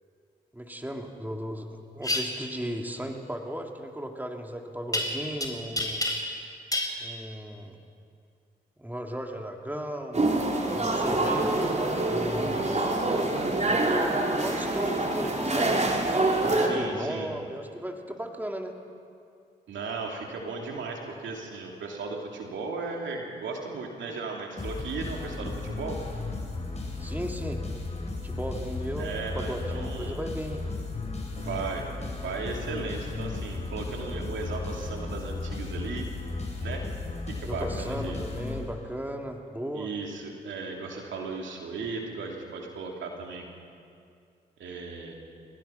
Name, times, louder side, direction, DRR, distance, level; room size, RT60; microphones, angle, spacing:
voice 1, 0.5-6.0 7.0-7.8 8.8-10.2 10.7-12.6 13.5-15.8 16.4-18.8 27.0-27.6 28.2-30.6 37.5-39.9, right 1 dB, 10° right, 2 dB, 2.9 m, -36 dB
sound 1, 2.0-2.2 4.9-5.5 5.8-6.4 6.7-6.9, left 1 dB, 20° left, 4.4 m, -28 dB
sound 2, 10.1-16.7, right 2 dB, 35° right, 3.9 m, -26 dB
voice 2, 16.6-17.3 19.7-26.0 29.0-30.2 31.3-31.9 32.2-36.1 36.6-36.9 37.3-38.4 39.7-43.5 44.6-45.1, right 4 dB, 75° right, 1 dB, 2.9 m, -36 dB
sound 3, 24.6-39.1, left 3 dB, 35° left, 5.6 m, -35 dB
30.0 x 15.5 x 5.8 m, 2.4 s
hypercardioid pair, 40°, 20 cm